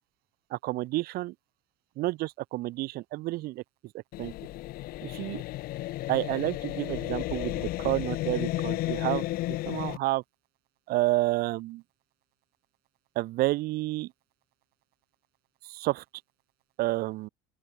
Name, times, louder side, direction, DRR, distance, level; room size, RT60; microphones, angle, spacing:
voice 1, 0.5-1.3 2.0-3.6 3.9-4.3 5.0-5.4 6.1-10.2 10.9-11.8 13.1-14.1 15.6-16.0 16.8-17.3, right 18 dB, 65° right, 1.4 m, -30 dB
sound 1, 4.1-10.0, left 17 dB, 60° left, 1.2 m, -33 dB
open air
supercardioid pair, 85°, 17 cm